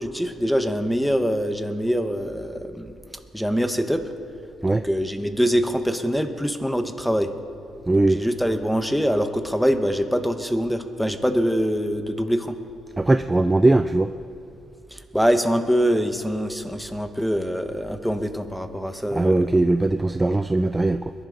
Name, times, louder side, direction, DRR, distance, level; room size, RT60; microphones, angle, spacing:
voice 1, 0.0-2.9 3.3-4.0 4.7-7.3 7.9-12.5 14.9-19.3, equal, ahead, 8 dB, 1.0 m, -24 dB
voice 2, 7.9-8.2 13.0-14.1 19.1-21.1, right 2 dB, 15° right, 10 dB, 0.4 m, -20 dB
21.5 x 11.0 x 3.9 m, 2.5 s
cardioid pair, 90°, 0 cm